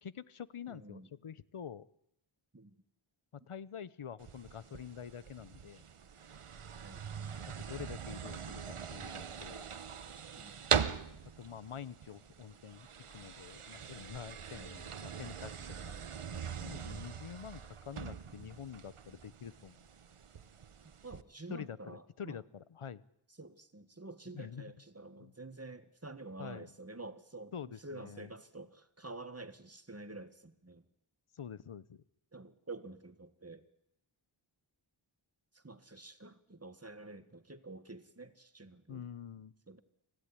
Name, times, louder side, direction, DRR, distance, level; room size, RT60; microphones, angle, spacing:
voice 1, 0.0-1.8 3.3-5.8 7.6-9.7 11.4-15.9 16.6-19.8 21.5-23.0 24.3-24.7 25.2-25.3 26.4-26.7 27.5-28.3 31.3-32.0 38.9-39.5, left 7 dB, 80° left, 18 dB, 1.0 m, -47 dB
voice 2, 0.7-1.1 2.5-2.7 6.8-7.1 10.3-10.7 14.5-14.7 16.8-17.0 21.0-22.4 23.4-27.5 27.8-30.8 32.3-33.6 35.5-39.0 39.7-39.8, right 2 dB, 30° right, 12 dB, 1.8 m, -49 dB
sound 1, 4.2-21.2, right 7 dB, 85° right, 1.2 m, -41 dB
25.5 x 16.0 x 9.9 m, 0.78 s
wide cardioid pair, 65°, 50 cm